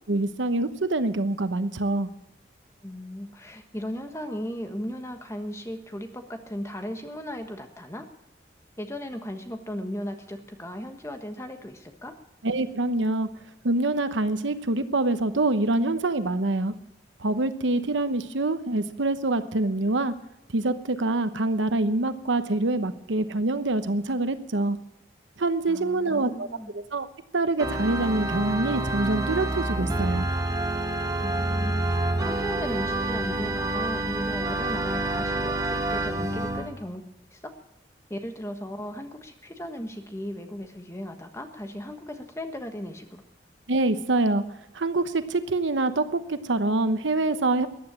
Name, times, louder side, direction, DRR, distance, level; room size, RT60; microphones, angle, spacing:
voice 1, 0.1-2.1 12.4-13.3 13.6-16.7 17.2-20.1 20.5-24.8 25.4-26.5 26.7-27.1 27.3-30.3 43.7-44.4 44.7-47.7, right 2 dB, 90° right, 11 dB, 1.0 m, -25 dB
voice 2, 2.8-8.1 8.8-12.2 25.7-26.8 31.2-37.0 37.3-37.5 38.1-43.2, equal, 15° left, 5 dB, 1.3 m, -36 dB
Organ, 27.6-36.7, right 2 dB, 20° right, 1.4 m, -28 dB
14.5 x 9.8 x 8.6 m, 0.91 s
head